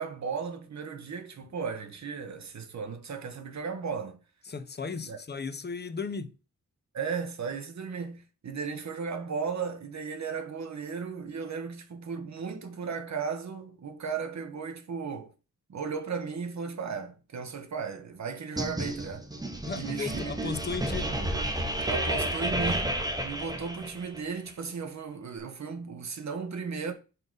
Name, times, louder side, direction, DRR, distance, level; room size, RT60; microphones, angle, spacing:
voice 1, 0.0-4.2 5.1-5.2 6.9-15.3 15.7-19.3 19.6-20.6 21.8-22.9 23.2-26.9, right 5 dB, 65° right, 1.1 m, -35 dB
voice 2, 4.5-6.3 19.7-21.1, left 4 dB, 35° left, 0.6 m, -35 dB
sound 1, 18.6-24.2, right 1 dB, 15° right, 0.8 m, -31 dB
5.5 x 3.8 x 5.4 m
wide cardioid pair, 165°, 30 cm